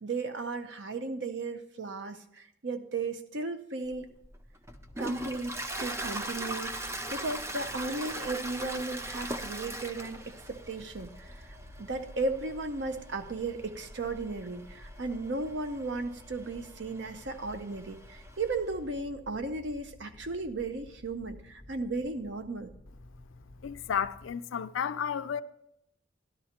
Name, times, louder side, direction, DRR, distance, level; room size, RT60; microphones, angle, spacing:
voice 1, 0.0-4.1 5.0-11.5 11.8-22.7, right 3 dB, 60° right, 0.7 m, -35 dB
Toilet flush, 3.9-18.7, right 1 dB, 15° right, 0.4 m, -41 dB
sound 1, 4.7-24.3, left 1 dB, 25° left, 0.7 m, -53 dB
voice 2, 23.6-25.4, left 7 dB, 75° left, 0.4 m, -32 dB
12.0 x 12.0 x 2.9 m
head